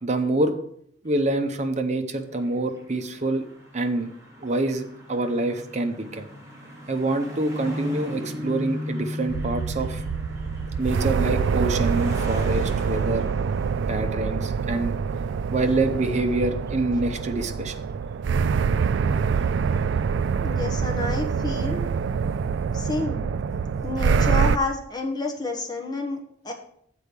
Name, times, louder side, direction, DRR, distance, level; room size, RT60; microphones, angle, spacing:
voice 1, 0.0-0.5 1.0-3.4 3.7-4.1 4.4-6.3 6.9-10.0 10.8-13.3 13.9-14.9 15.5-17.7, right 2 dB, 40° right, 6 dB, 0.8 m, -26 dB
sound 1, 2.3-15.2 15.7-16.4 16.7-16.8 18.4-18.8 19.3-20.0, left 1 dB, 15° right, 1.7 m, -38 dB
sound 2, 9.3-24.6, right 6 dB, 85° right, 0.3 m, -25 dB
voice 2, 20.4-21.8 22.7-23.3 23.8-26.5, left 2 dB, 25° left, 1 dB, 1.2 m, -29 dB
7.1 x 4.6 x 6.7 m, 0.68 s
head